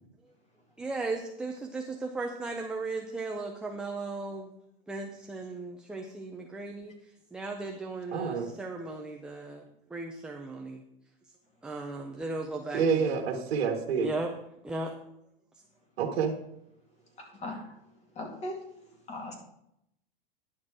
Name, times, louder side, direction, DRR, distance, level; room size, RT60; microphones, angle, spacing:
voice 1, 0.8-4.5 4.9-6.9 7.3-9.6 9.9-10.8 11.6-13.2 14.0-14.3 14.6-14.9, right 3 dB, 5° right, 1 dB, 0.4 m, -36 dB
voice 2, 8.1-8.5 12.7-14.1 16.0-16.3, right 6 dB, 75° right, -1 dB, 1.7 m, -28 dB
voice 3, 17.2-17.7 18.2-18.6 19.1-19.3, left 1 dB, 20° left, 1 dB, 2.4 m, -38 dB
10.5 x 6.5 x 4.8 m, 0.78 s
supercardioid pair, 150°, 30 cm